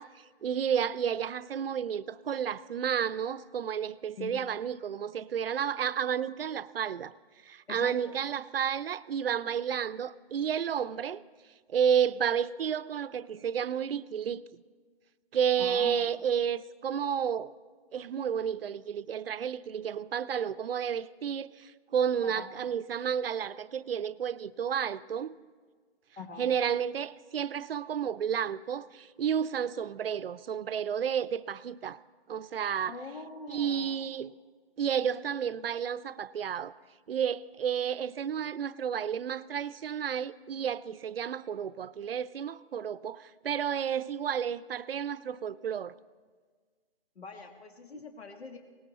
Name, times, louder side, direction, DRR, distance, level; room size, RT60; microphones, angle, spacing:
voice 1, 0.0-7.1 7.4-11.2 11.7-14.4 15.3-17.5 17.9-25.4 26.4-32.0 32.3-32.9 33.5-34.3 34.8-36.7 37.1-45.9, right 8 dB, 65° right, 0.6 m, -31 dB
voice 2, 7.7-8.2 15.6-16.1 22.2-22.5 26.2-26.5 32.9-34.0 47.1-48.6, left 4 dB, 75° left, 1.8 m, -43 dB
18.5 x 16.5 x 4.2 m
hypercardioid pair, 155°, 31 cm